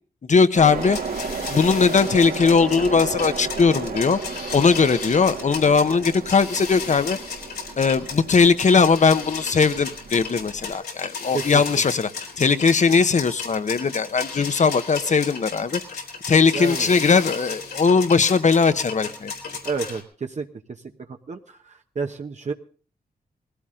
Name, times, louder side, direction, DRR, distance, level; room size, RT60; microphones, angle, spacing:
voice 1, 0.3-1.0 1.5-4.2 4.5-7.2 7.8-12.1 12.4-15.8 16.3-19.3, left 5 dB, 50° left, 12 dB, 1.2 m, -19 dB
sound 1, 0.5-10.7, right 5 dB, 75° right, 2.6 m, -34 dB
sound 2, 0.7-20.0, left 5 dB, 85° left, 3.8 m, -34 dB
voice 2, 16.5-16.9 19.6-20.5 21.3-22.5, right 5 dB, 50° right, 4 dB, 1.1 m, -30 dB
19.0 x 16.0 x 3.8 m, 0.40 s
cardioid pair, 70°, 16 cm